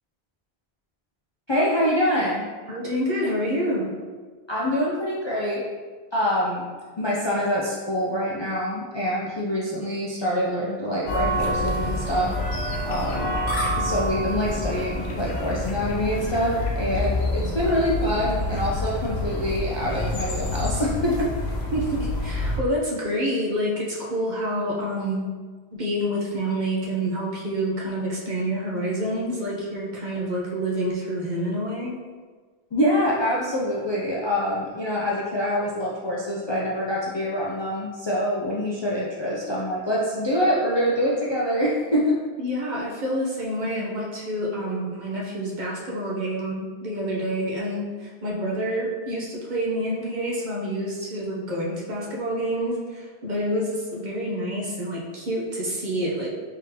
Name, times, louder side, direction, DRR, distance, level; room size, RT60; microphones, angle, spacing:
voice 1, 1.5-2.4 4.5-5.6 6.1-6.6 7.0-12.3 12.8-13.3 13.8-21.3 32.7-42.2, equal, 40° left, -6 dB, 0.4 m, -25 dB
voice 2, 2.7-3.9 17.4-17.8 21.7-25.3 25.8-32.0 42.4-56.3, equal, 50° right, -4 dB, 0.8 m, -28 dB
sound 1, 11.1-22.6, left 1 dB, 90° left, 1.0 m, -27 dB
3.8 x 3.7 x 2.8 m, 1.5 s
omnidirectional pair, 1.1 m